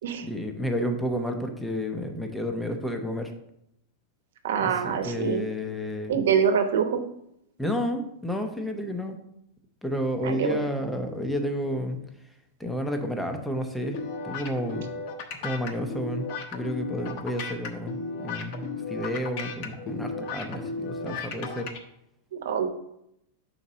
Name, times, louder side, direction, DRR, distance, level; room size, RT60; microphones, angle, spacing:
voice 1, 0.2-3.3 4.6-6.2 7.6-9.2 9.8-12.0 12.6-14.9 15.4-21.7, equal, ahead, 4 dB, 0.6 m, -31 dB
voice 2, 4.4-5.4 6.1-7.0 10.2-10.6 21.3-21.5 22.3-22.7, right 7 dB, 80° right, 7 dB, 0.9 m, -25 dB
sound 1, 13.9-21.8, left 4 dB, 45° left, 0.8 m, -35 dB
5.7 x 4.2 x 5.0 m, 0.78 s
supercardioid pair, 170°, 0 cm